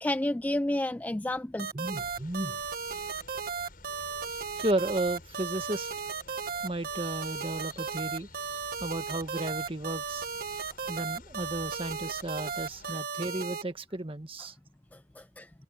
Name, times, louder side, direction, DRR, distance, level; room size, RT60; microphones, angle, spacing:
voice 1, 0.0-1.7 14.9-15.5, left 1 dB, 10° left, 0.3 m, -31 dB
sound 1, 1.6-13.6, right 5 dB, 50° right, 1.6 m, -35 dB
voice 2, 1.7-2.6 4.5-5.9 6.6-8.3 8.8-10.3 10.9-14.5, right 1 dB, 30° right, 1.5 m, -33 dB
sound 2, 2.0-12.9, left 2 dB, 50° left, 6.7 m, -53 dB
head